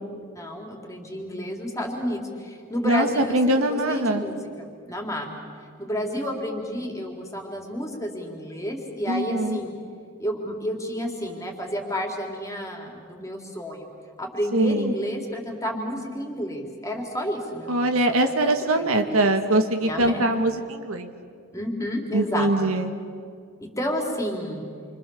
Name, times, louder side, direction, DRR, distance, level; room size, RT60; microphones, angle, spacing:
voice 1, 0.3-5.4 5.8-9.7 10.2-13.9 14.2-19.3 19.9-20.4 21.5-22.7 23.6-24.6, equal, 15° left, 1 dB, 3.7 m, -31 dB
voice 2, 2.8-4.2 9.1-9.6 14.5-14.9 17.7-21.1 22.1-22.9, right 1 dB, 70° right, 5 dB, 1.9 m, -22 dB
28.5 x 26.0 x 7.2 m, 2.2 s
head